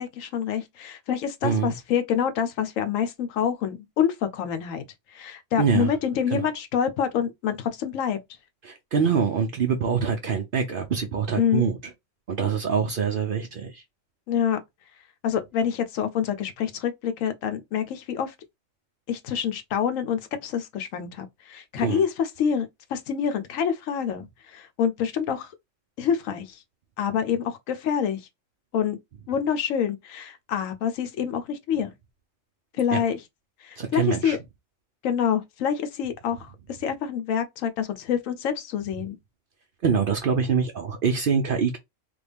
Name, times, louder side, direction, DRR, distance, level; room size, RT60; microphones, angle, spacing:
voice 1, 0.0-4.8 5.1-8.2 11.4-11.6 14.3-14.6 15.2-18.3 19.1-25.5 26.0-26.6 27.0-28.3 28.7-29.0 29.3-31.9 32.8-33.2 33.6-34.4 35.0-39.2, left 8 dB, 80° left, 1.0 m, -27 dB
voice 2, 1.4-1.7 5.6-5.9 6.3-6.4 8.6-11.8 12.3-13.8 21.8-22.1 32.9-33.0 33.8-34.4 39.8-41.8, right 6 dB, 60° right, 0.6 m, -24 dB
3.4 x 2.2 x 3.4 m
omnidirectional pair, 1.4 m